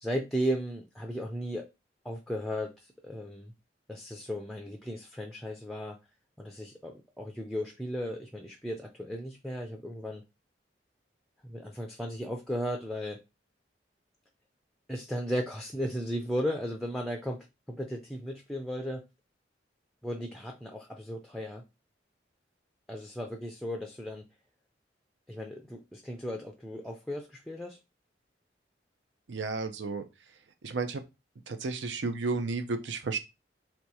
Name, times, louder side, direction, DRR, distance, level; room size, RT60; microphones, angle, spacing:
voice 1, 0.0-1.7 2.0-3.5 3.9-6.0 6.4-10.2 11.5-13.2 14.9-19.0 20.0-21.6 22.9-24.2 25.3-27.8, equal, ahead, 0.4 m, -35 dB
voice 2, 29.3-30.0 30.6-31.0 31.5-33.2, right 4 dB, 85° right, 0.5 m, -32 dB
3.2 x 2.9 x 4.6 m
head